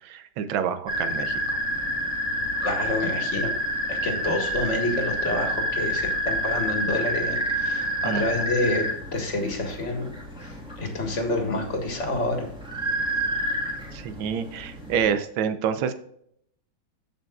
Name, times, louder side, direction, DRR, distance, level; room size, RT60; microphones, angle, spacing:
voice 1, 0.0-1.6 8.0-8.3 13.9-15.9, right 7 dB, 75° right, 10 dB, 1.5 m, -28 dB
sound 1, 0.9-15.1, equal, 5° right, 1.2 m, -29 dB
voice 2, 2.6-3.6 3.9-8.8 9.1-12.5, left 2 dB, 40° left, 3 dB, 1.9 m, -28 dB
14.5 x 5.3 x 2.4 m, 0.69 s
omnidirectional pair, 2.2 m